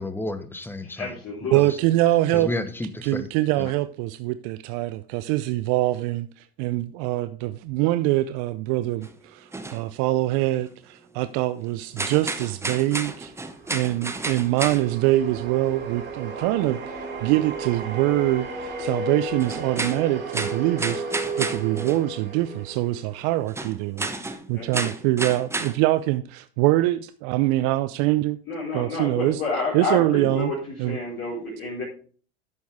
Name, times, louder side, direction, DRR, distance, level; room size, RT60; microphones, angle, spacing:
voice 1, 0.0-1.2 1.5-1.8 2.3-3.3 3.6-3.7, left 1 dB, 5° left, 1.2 m, -31 dB
voice 2, 0.9-1.6 24.5-24.9 28.5-31.8, left 3 dB, 40° left, 5.2 m, -30 dB
voice 3, 1.5-2.5 3.0-13.3 13.7-28.4 28.7-29.4 29.7-30.5 30.8-31.0, right 16 dB, 50° right, 0.6 m, -24 dB
sound 1, 9.0-9.1 9.5-10.7 11.1-11.4 11.8-15.3 15.7-15.8 16.4-16.5 16.6-16.7 17.3-17.4 17.9-18.0 18.7-18.8 19.3-22.3 22.6-22.7 23.4-26.2, right 2 dB, 10° right, 1.1 m, -32 dB
sound 2, 13.1-23.5, right 2 dB, 35° right, 4.7 m, -34 dB
10.5 x 7.0 x 3.5 m
hypercardioid pair, 90°, 30 cm